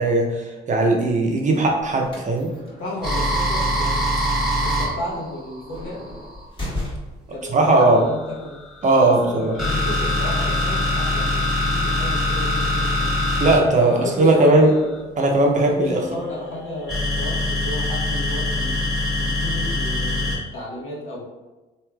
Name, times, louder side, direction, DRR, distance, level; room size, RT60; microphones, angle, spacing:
voice 1, 0.0-2.5 7.5-8.0 8.8-9.5 13.4-14.7 15.2-16.0, right 2 dB, 40° right, 1 dB, 0.6 m, -18 dB
sound 1, 1.8-7.4, left 1 dB, 25° left, 1.2 m, -36 dB
voice 2, 2.8-4.3 4.6-6.0 7.3-8.6 8.8-13.3 13.8-15.0 15.6-21.2, left 1 dB, 80° left, -5 dB, 1.0 m, -33 dB
sound 2, 3.0-6.5 7.6-15.0 16.9-20.4, left 1 dB, ahead, 1.3 m, -23 dB
3.1 x 2.7 x 2.3 m, 1.1 s
cardioid pair, 90°, 20 cm